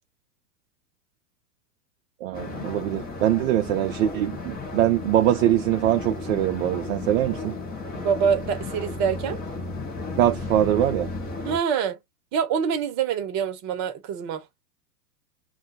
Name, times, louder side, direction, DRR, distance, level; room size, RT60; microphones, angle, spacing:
voice 1, 2.2-7.6 10.2-11.1, right 12 dB, 55° right, 0.6 m, -23 dB
sound 1, 2.3-11.6, left 3 dB, 20° left, 0.9 m, -34 dB
voice 2, 7.9-9.4 11.4-12.0 12.3-14.5, right 7 dB, 35° right, 0.9 m, -25 dB
2.3 x 2.3 x 3.9 m
hypercardioid pair, 105°, 49 cm